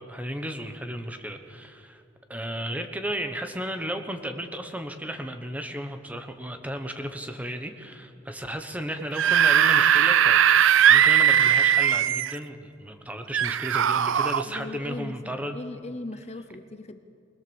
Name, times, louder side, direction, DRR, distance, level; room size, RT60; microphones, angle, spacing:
voice 1, 0.0-2.0 2.3-10.4 10.9-15.6, equal, 5° right, 6 dB, 1.0 m, -34 dB
Screaming / Screech, 9.0-12.4 13.3-14.4, right 9 dB, 70° right, 0.4 m, -19 dB
voice 2, 14.5-17.0, left 2 dB, 35° left, 9 dB, 0.8 m, -38 dB
21.0 x 20.5 x 7.1 m, 2.5 s
head